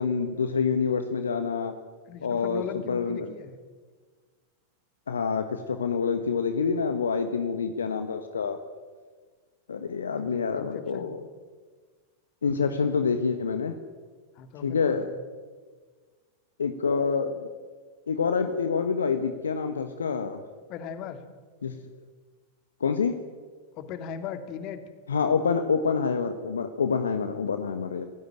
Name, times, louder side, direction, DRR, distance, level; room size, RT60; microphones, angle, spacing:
voice 1, 0.0-1.7 2.2-3.3 5.1-8.6 9.7-11.2 12.4-13.7 14.6-15.1 16.6-17.5 18.1-20.4 21.6-21.8 22.8-23.2 25.1-28.0, left 5 dB, 70° left, 8 dB, 1.4 m, -27 dB
voice 2, 2.1-3.6 10.1-11.1 14.3-15.0 20.7-21.2 23.7-24.8, left 8 dB, 40° left, 8 dB, 2.7 m, -38 dB
27.5 x 16.0 x 9.1 m, 1.5 s
figure-of-eight pair, 90°, 0 cm